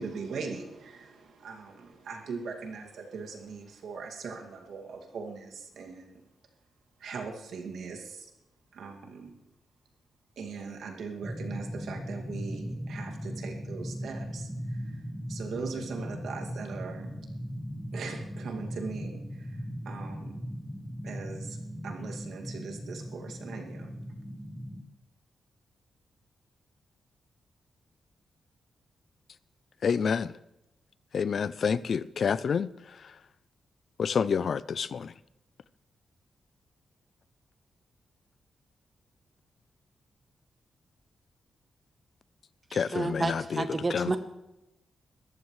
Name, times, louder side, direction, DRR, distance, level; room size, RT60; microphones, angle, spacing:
voice 1, 0.0-6.2 7.0-8.3 8.7-9.3 10.4-14.8 15.3-17.1 17.9-20.4 21.0-21.6 21.8-23.9, right 5 dB, 85° right, 2.2 m, -40 dB
sound 1, 11.2-24.8, equal, 5° left, 1.3 m, -38 dB
voice 2, 29.8-30.3 31.1-32.7 34.0-35.1 42.7-43.6 43.9-44.1, left 6 dB, 50° left, 0.4 m, -28 dB
voice 3, 42.7-44.2, right 3 dB, 25° right, 0.9 m, -30 dB
21.0 x 14.0 x 3.2 m
wide cardioid pair, 140°, 0 cm